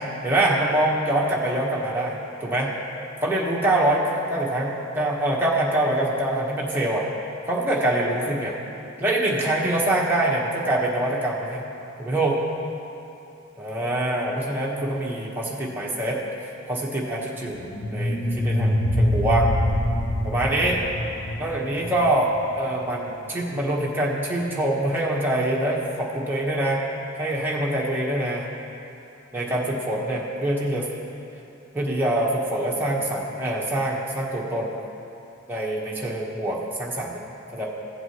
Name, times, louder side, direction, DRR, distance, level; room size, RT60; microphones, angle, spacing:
voice 1, 0.0-2.7 3.2-7.1 7.5-8.5 9.0-11.7 12.0-12.4 13.6-16.2 16.7-17.6 17.9-19.5 20.2-20.8 21.4-26.8 27.2-28.4 29.3-30.9 31.7-34.8 35.5-37.2 37.5-37.7, right 1 dB, 10° right, -5 dB, 1.3 m, -24 dB
sound 1, 17.5-22.6, left 1 dB, 85° left, 1.0 m, -25 dB
16.5 x 7.9 x 3.1 m, 2.8 s
head